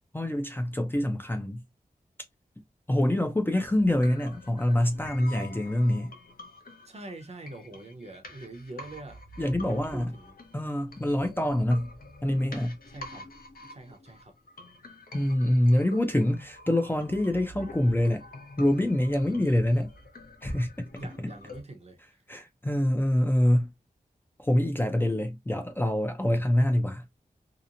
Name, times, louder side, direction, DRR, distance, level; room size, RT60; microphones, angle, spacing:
voice 1, 0.1-1.6 2.9-6.1 9.4-10.1 10.5-11.9 12.2-12.8 15.1-18.2 18.6-19.9 20.4-20.9 22.3-23.7 24.4-27.0, left 1 dB, 15° left, 0.4 m, -25 dB
sound 1, 3.6-21.6, left 1 dB, 70° left, 0.7 m, -47 dB
voice 2, 6.9-10.3 12.9-13.3 13.7-14.3 21.0-22.0, right 2 dB, 45° right, 0.6 m, -44 dB
2.8 x 2.0 x 2.5 m
wide cardioid pair, 85°, 16 cm